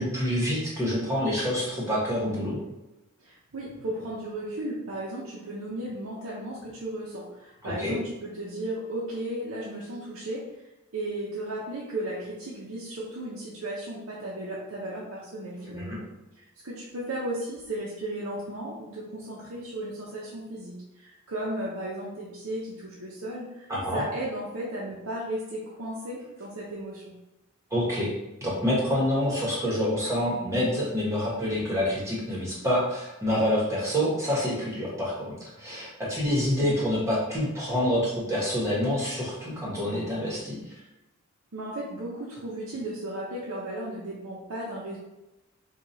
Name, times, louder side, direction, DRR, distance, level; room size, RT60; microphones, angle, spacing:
voice 1, 0.0-2.6 7.6-7.9 15.6-16.0 23.7-24.0 27.7-28.1 28.4-40.6, equal, 15° right, -6 dB, 1.2 m, -27 dB
voice 2, 3.2-10.5 10.9-16.0 16.4-27.1 41.5-45.0, right 1 dB, 80° right, -6 dB, 0.7 m, -35 dB
4.6 x 2.4 x 2.7 m, 0.97 s
head